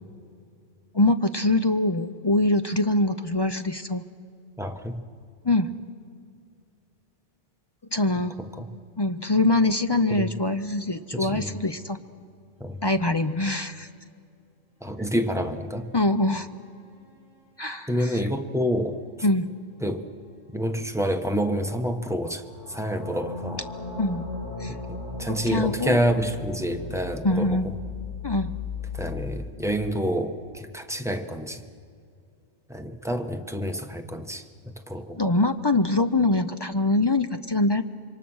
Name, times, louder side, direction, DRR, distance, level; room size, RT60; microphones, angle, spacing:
voice 1, 0.9-4.0 5.4-5.7 7.9-8.4 9.0-12.0 12.8-13.9 15.9-16.5 17.6-18.2 19.2-19.5 24.0-24.2 24.6-24.7 25.3-26.0 27.2-27.7 28.2-28.5 35.2-37.8, left 2 dB, 30° left, 9 dB, 0.5 m, -23 dB
voice 2, 4.6-5.0 8.4-8.7 10.1-10.3 11.1-11.5 12.6-12.8 14.8-15.9 17.9-19.0 19.8-20.1 20.5-23.6 25.2-27.8 28.9-31.6 32.7-34.4 34.9-35.2, equal, 5° right, 5 dB, 1.0 m, -28 dB
sound 1, 16.2-17.2 22.4-29.3, left 4 dB, 75° left, 6.2 m, -37 dB
27.0 x 24.0 x 6.3 m, 2.4 s
omnidirectional pair, 1.2 m